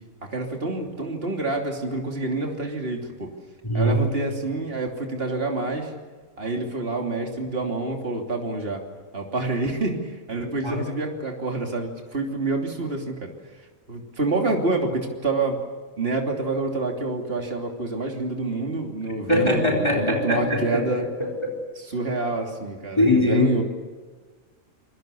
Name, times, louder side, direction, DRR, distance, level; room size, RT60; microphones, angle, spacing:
voice 1, 0.3-3.3 3.7-5.9 6.4-8.8 9.1-13.3 13.9-15.6 16.0-21.1 21.9-23.6, right 2 dB, 45° right, 1 dB, 3.3 m, -27 dB
voice 2, 3.6-4.0 10.4-10.8 19.3-21.6 23.0-23.6, left 1 dB, 20° left, 1 dB, 4.1 m, -22 dB
28.5 x 23.5 x 6.9 m, 1.4 s
omnidirectional pair, 1.4 m